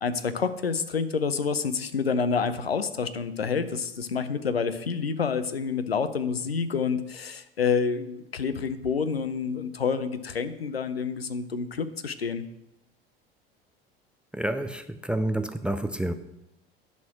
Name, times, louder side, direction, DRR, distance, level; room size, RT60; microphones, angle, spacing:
voice 1, 0.0-12.4, left 5 dB, 85° left, 12 dB, 0.6 m, -28 dB
voice 2, 14.3-16.1, right 1 dB, 5° right, 10 dB, 0.3 m, -29 dB
10.5 x 4.3 x 5.9 m, 0.86 s
figure-of-eight pair, 70°, 30 cm